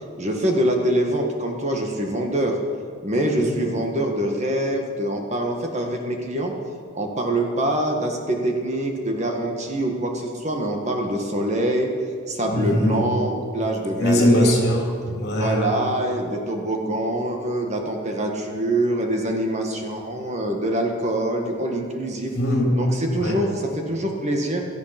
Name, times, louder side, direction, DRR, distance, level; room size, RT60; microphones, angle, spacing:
voice 1, 0.2-2.6 3.0-6.5 6.9-11.9 12.3-14.6 15.3-22.3 22.7-24.6, right 1 dB, 30° right, 2 dB, 1.6 m, -24 dB
voice 2, 12.5-13.0 14.0-15.7 22.3-22.7 23.2-23.4, left 1 dB, 50° left, -1 dB, 3.5 m, -21 dB
17.5 x 13.0 x 5.9 m, 2.2 s
head